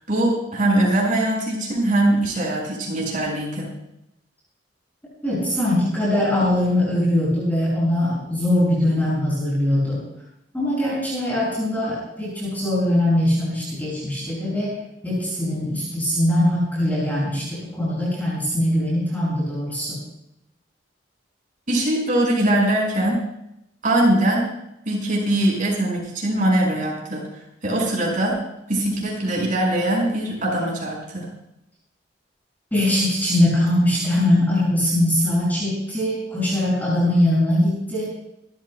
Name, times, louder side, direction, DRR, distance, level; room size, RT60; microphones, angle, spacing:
voice 1, 0.1-3.7 21.7-23.2 23.8-24.5 24.9-27.3 27.6-28.4 28.7-31.3, right 1 dB, 45° right, -2 dB, 5.7 m, -21 dB
voice 2, 5.2-10.0 10.5-14.8 15.0-20.0 32.7-38.1, left 1 dB, 10° left, -7 dB, 6.4 m, -21 dB
27.0 x 13.5 x 2.3 m, 0.82 s
head